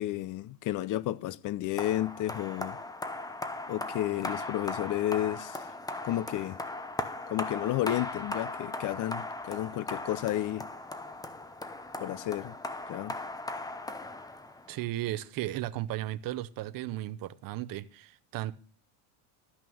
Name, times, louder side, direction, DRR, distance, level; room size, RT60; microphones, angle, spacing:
voice 1, 0.0-2.8 3.7-5.7 6.0-6.6 7.3-10.7 12.0-12.6 12.9-13.2, left 14 dB, 40° left, 0.6 m, -32 dB
sound 1, 1.8-14.8, left 2 dB, 10° left, 0.7 m, -38 dB
voice 2, 14.7-18.5, right 14 dB, 40° right, 0.8 m, -35 dB
13.0 x 6.0 x 7.0 m
cardioid pair, 125°, 50 cm